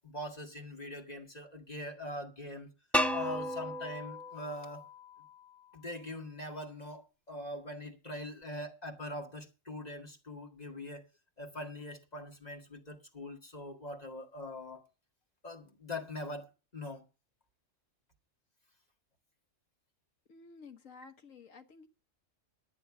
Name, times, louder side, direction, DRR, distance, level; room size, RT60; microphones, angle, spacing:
voice 1, 0.0-2.7 3.1-4.9 5.7-11.0 11.4-14.9 15.4-17.1, left 1 dB, 30° left, 2.0 m, -42 dB
sound 1, 2.9-5.8, equal, ahead, 0.4 m, -35 dB
voice 2, 20.3-21.9, left 4 dB, 80° left, 1.7 m, -53 dB
9.9 x 9.8 x 6.0 m
omnidirectional pair, 1.3 m